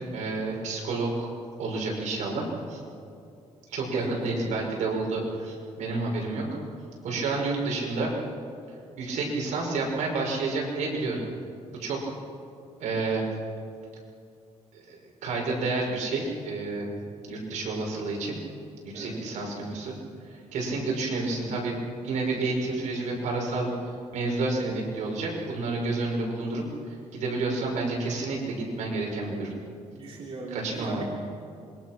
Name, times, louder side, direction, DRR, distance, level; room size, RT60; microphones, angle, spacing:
voice 1, 0.1-1.3 1.6-2.8 3.7-6.5 7.0-8.1 9.0-11.2 11.8-12.1 12.8-13.3 14.7-16.9 17.3-18.4 18.8-19.9 20.2-21.8 22.0-23.7 24.1-29.5 30.5-31.0, right 3 dB, 80° right, -1 dB, 5.8 m, -30 dB
voice 2, 29.9-31.0, right 3 dB, 50° right, -2 dB, 3.2 m, -38 dB
26.5 x 23.0 x 6.1 m, 2.5 s
cardioid pair, 130°, 12 cm